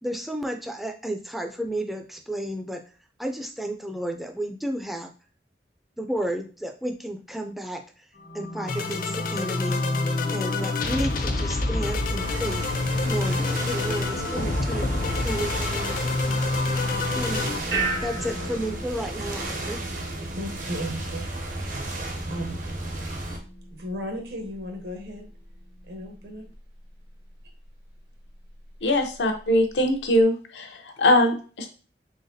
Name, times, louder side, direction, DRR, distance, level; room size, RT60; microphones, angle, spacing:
voice 1, 0.0-2.8 3.2-5.1 6.0-7.8 8.3-9.8 10.3-12.7 13.0-14.9 15.2-16.2 17.1-17.5 18.0-19.8, right 1 dB, ahead, 4 dB, 0.4 m, -32 dB
sound 1, 8.3-17.6, left 3 dB, 50° left, 0.5 m, -27 dB
sound 2, 12.2-23.4, right 2 dB, 45° right, 0.7 m, -33 dB
sound 3, 17.7-30.2, right 2 dB, 85° right, 1.3 m, -38 dB
voice 2, 20.1-21.3 22.3-22.6 23.7-25.3 25.9-26.5, equal, 65° right, 3 dB, 1.0 m, -35 dB
voice 3, 28.8-31.7, left 1 dB, 90° left, 4 dB, 0.7 m, -22 dB
3.9 x 3.5 x 2.6 m, 0.38 s
head